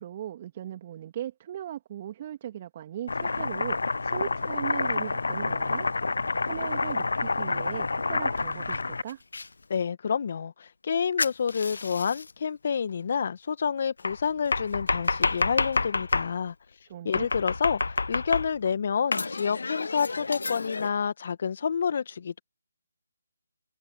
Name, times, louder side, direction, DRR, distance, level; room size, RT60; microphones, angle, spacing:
voice 1, 0.0-5.9 6.4-9.2 16.9-17.3, right 11 dB, 30° right, 3.0 m, -38 dB
Domestic sounds home sounds, 3.1-9.5 11.2-12.3 14.0-16.3 17.1-18.7 19.1-20.9, left 3 dB, 70° left, 0.6 m, -29 dB
voice 2, 9.7-16.5 17.0-22.4, left 6 dB, 45° left, 1.9 m, -29 dB
figure-of-eight pair, 155°, 0 cm